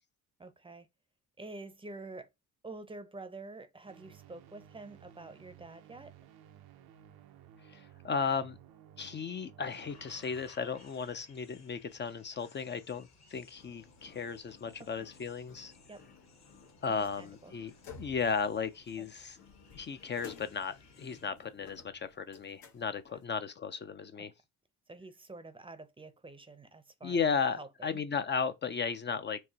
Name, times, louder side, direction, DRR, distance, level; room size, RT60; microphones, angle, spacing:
voice 1, 0.4-0.9 1.4-2.3 2.6-6.1 14.8-15.1 15.9-16.0 17.2-17.5 19.0-19.1 24.9-28.0, right 3 dB, 15° right, 0.6 m, -48 dB
sound 1, 3.8-10.5, right 10 dB, 85° right, 0.7 m, -56 dB
voice 2, 7.7-8.6 9.0-15.7 16.8-17.7 18.0-19.4 19.7-24.3 27.0-29.4, left 6 dB, 30° left, 0.4 m, -35 dB
sound 2, 9.7-21.3, left 4 dB, 45° left, 1.2 m, -61 dB
sound 3, 13.6-23.2, left 5 dB, 80° left, 1.3 m, -55 dB
4.6 x 2.5 x 2.8 m
cardioid pair, 95°, 36 cm